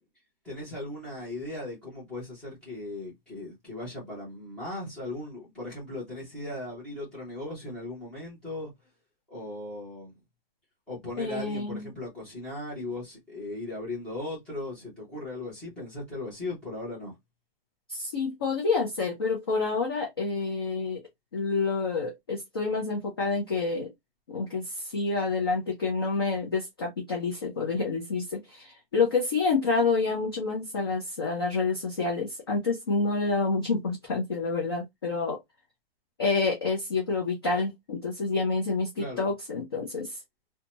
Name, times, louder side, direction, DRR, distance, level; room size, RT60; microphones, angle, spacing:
voice 1, 0.4-8.7 9.3-10.1 10.9-17.2 39.0-39.3, left 2 dB, 5° left, 0.8 m, -37 dB
voice 2, 11.2-11.9 17.9-21.0 21.3-23.9 24.3-35.4 36.2-40.2, left 4 dB, 25° left, 0.4 m, -28 dB
2.7 x 2.2 x 2.8 m
hypercardioid pair, 175°, 30 cm